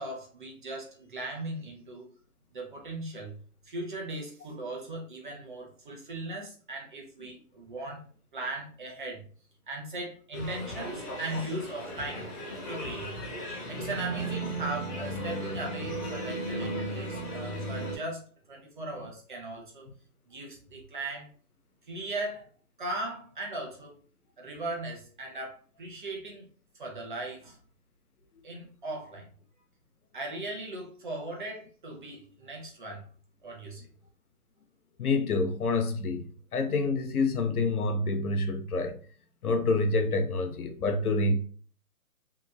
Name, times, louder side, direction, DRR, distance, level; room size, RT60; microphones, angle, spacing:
voice 1, 0.0-2.1 2.5-3.4 3.6-8.0 8.3-9.2 9.7-12.3 12.7-13.2 13.7-18.2 18.5-19.9 20.3-21.3 21.9-22.4 22.8-24.0 24.4-26.5 26.7-27.6 28.4-29.3 30.1-33.0 33.4-33.8, right 2 dB, 35° right, 0.7 m, -38 dB
sound 1, 10.3-18.0, right 1 dB, 35° left, 1.2 m, -35 dB
voice 2, 35.0-36.3 36.5-39.0 39.4-41.4, left 3 dB, 75° left, 0.7 m, -27 dB
2.9 x 2.5 x 2.3 m
hypercardioid pair, 150°, 45 cm